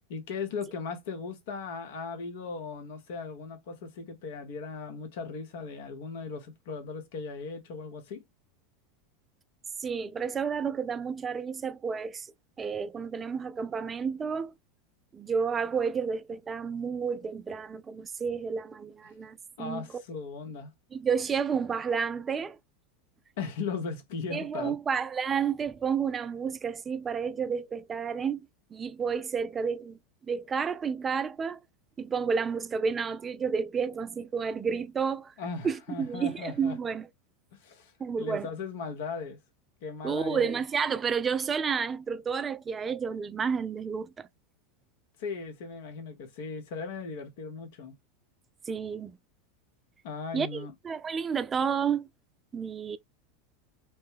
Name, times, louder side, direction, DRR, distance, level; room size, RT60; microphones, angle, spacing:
voice 1, 0.1-8.2 19.6-20.7 23.4-24.8 35.4-36.8 37.5-37.9 38.2-39.4 39.8-40.6 45.2-48.0 50.0-50.7, left 5 dB, 65° left, 0.8 m, -37 dB
voice 2, 9.8-12.3 12.6-14.5 15.1-20.0 20.9-22.6 24.3-31.6 32.0-35.3 35.6-37.1 38.0-38.5 40.0-44.3 48.7-49.2 50.3-52.1 52.5-53.0, right 6 dB, 25° right, 0.3 m, -31 dB
3.0 x 2.1 x 3.2 m
hypercardioid pair, 90°, 0 cm